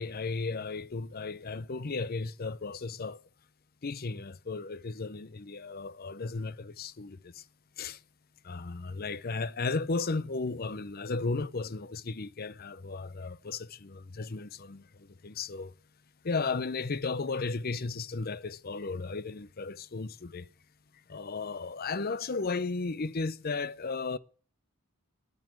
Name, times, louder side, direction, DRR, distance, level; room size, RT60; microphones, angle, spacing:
voice 1, 0.0-3.2 3.8-7.4 7.8-8.0 8.4-15.7 16.2-20.5 21.1-24.2, left 3 dB, 45° left, 0.6 m, -35 dB
9.8 x 9.4 x 8.8 m
head